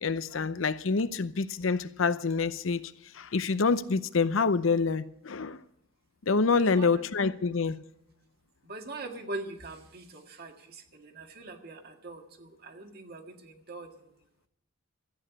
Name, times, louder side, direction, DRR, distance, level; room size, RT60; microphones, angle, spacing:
voice 1, 0.0-2.8 3.1-5.6 6.3-7.8, left 4 dB, 80° left, 0.7 m, -27 dB
voice 2, 6.5-6.9 8.6-13.9, right 2 dB, 50° right, 1.8 m, -42 dB
14.0 x 8.8 x 9.7 m
head